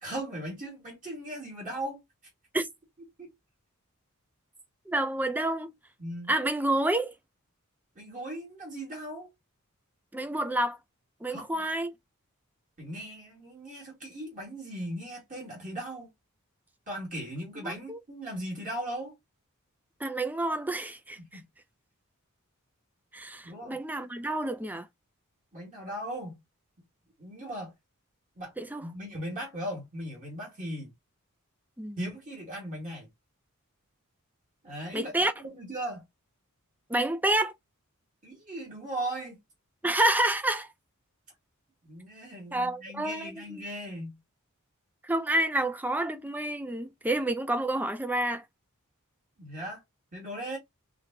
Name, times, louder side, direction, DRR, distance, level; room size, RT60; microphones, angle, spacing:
voice 1, 0.0-2.0 3.2-3.3 6.0-6.3 8.0-9.3 11.3-11.6 12.8-16.1 16.9-19.2 21.3-21.4 23.4-23.8 25.5-26.4 27.2-27.7 28.4-28.5 28.8-30.9 32.0-33.1 34.6-35.1 35.4-36.0 38.2-39.4 41.8-44.2 49.4-49.8 50.1-50.6, right 1 dB, 35° right, 2.1 m, -38 dB
voice 2, 4.9-5.7 6.3-7.1 10.1-10.8 11.2-11.9 17.6-18.0 20.0-21.2 23.1-24.9 28.6-28.9 31.8-32.0 34.9-35.3 36.9-37.5 39.8-40.7 42.5-43.6 45.0-48.4, right 1 dB, 10° right, 0.5 m, -29 dB
3.8 x 3.5 x 2.9 m
head